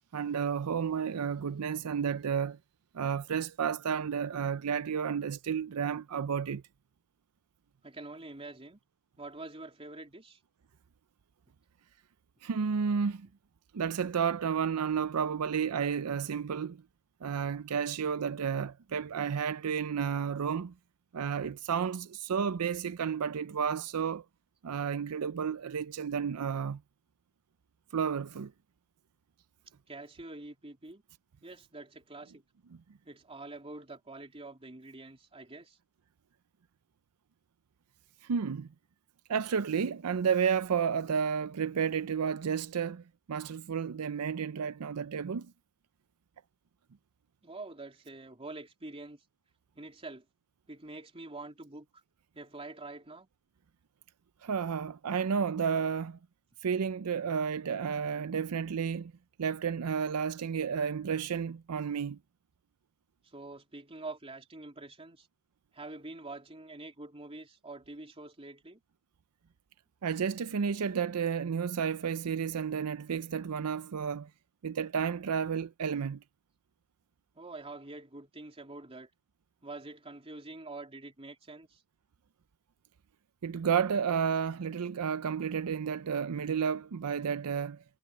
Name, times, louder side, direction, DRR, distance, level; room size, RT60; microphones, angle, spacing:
voice 1, 0.1-2.6 2.9-6.6 12.4-13.3 13.7-16.8 17.2-20.7 21.1-24.2 24.6-26.8 27.9-28.5 38.2-38.7 39.3-45.5 54.4-56.2 56.6-59.1 59.4-62.2 70.0-74.3 74.6-76.2 83.4-87.8, right 7 dB, 85° right, 0.5 m, -31 dB
voice 2, 7.8-8.8 9.2-10.4 29.9-31.0 31.4-32.4 33.0-35.8 47.4-49.2 49.7-50.2 50.7-52.0 52.3-53.3 63.2-65.3 65.7-68.8 77.3-79.1 79.6-81.8, right 2 dB, 25° right, 3.2 m, -46 dB
head